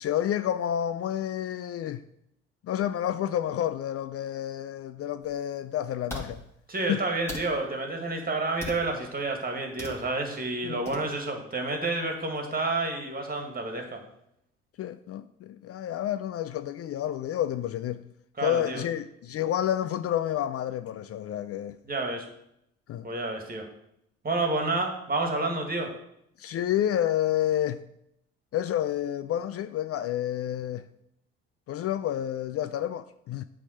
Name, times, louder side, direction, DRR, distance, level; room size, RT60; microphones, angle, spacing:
voice 1, 0.0-2.0 2.6-6.5 6.9-7.1 10.6-10.8 14.8-18.1 18.4-21.8 22.9-23.1 26.4-27.8 28.5-30.9 31.7-33.4, left 11 dB, 50° left, 0.4 m, -29 dB
sound 1, 5.2-5.3 6.1-6.3 7.3-7.5 8.6-8.9 9.8-10.0 10.9-11.0, equal, 10° left, 2.2 m, -37 dB
voice 2, 6.7-14.0 18.4-18.8 21.9-22.3 23.0-23.7 24.2-25.9, right 2 dB, 30° right, 2.0 m, -29 dB
8.2 x 3.6 x 6.4 m
hypercardioid pair, 55°, 30 cm